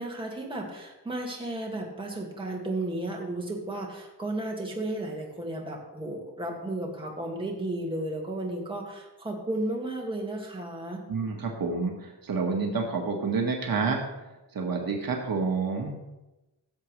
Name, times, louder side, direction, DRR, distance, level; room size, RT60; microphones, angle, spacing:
voice 1, 0.0-11.0, right 1 dB, 15° right, -1 dB, 2.0 m, -33 dB
voice 2, 11.1-14.0 14.5-15.9, right 4 dB, 60° right, 1 dB, 1.6 m, -28 dB
16.5 x 7.4 x 3.3 m, 1.0 s
wide cardioid pair, 140°, 40 cm